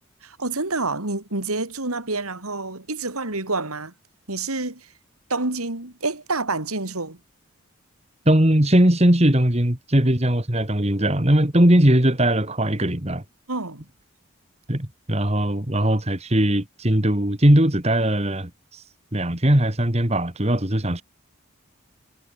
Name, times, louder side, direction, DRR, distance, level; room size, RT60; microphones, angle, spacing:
voice 1, 0.2-3.9 4.3-4.9 5.3-7.2 10.1-10.2 13.5-13.9, right 3 dB, 85° right, 3.9 m, -28 dB
voice 2, 8.3-13.2 14.7-18.8 19.1-21.0, right 1 dB, 30° right, 2.4 m, -19 dB
head